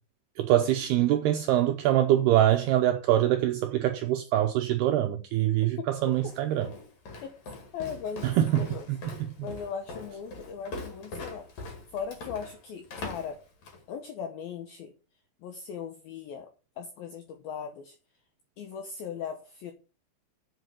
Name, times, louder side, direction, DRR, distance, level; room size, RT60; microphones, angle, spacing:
voice 1, 0.4-6.7 8.2-9.0, right 12 dB, 90° right, 2.3 m, -24 dB
Walk footsteps, 6.1-13.9, left 3 dB, 45° left, 3.0 m, -42 dB
voice 2, 7.7-8.9 9.4-11.5 11.9-13.4 13.9-14.9 15.4-16.5 16.8-18.0 18.6-19.7, left 7 dB, 85° left, 2.1 m, -38 dB
7.9 x 6.1 x 6.6 m
omnidirectional pair, 5.6 m